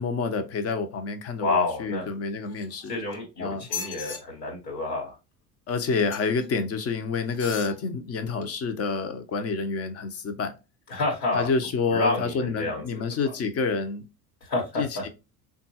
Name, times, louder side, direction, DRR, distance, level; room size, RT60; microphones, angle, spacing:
voice 1, 0.0-2.9 3.4-3.7 5.7-10.5 11.3-14.1 14.8-15.1, left 4 dB, 30° left, 0.6 m, -28 dB
voice 2, 1.4-2.1 2.9-5.2 10.9-11.5 11.9-13.0 14.4-15.0, left 2 dB, 80° left, 1.2 m, -29 dB
sound 1, 2.5-3.2 3.6-4.2 6.1-6.4 7.3-7.8 8.4-8.5, left 7 dB, 50° left, 1.1 m, -37 dB
3.6 x 2.3 x 2.8 m
hypercardioid pair, 70°, 47 cm